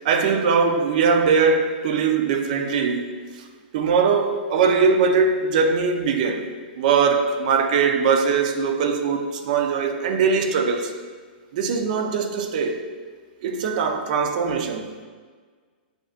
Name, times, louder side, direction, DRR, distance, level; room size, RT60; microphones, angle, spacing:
voice 1, 0.0-3.2 3.7-10.9 11.5-12.8 13.4-14.9, right 5 dB, 50° right, 0.6 m, -21 dB
7.4 x 5.3 x 2.5 m
hypercardioid pair, 155°, 5 cm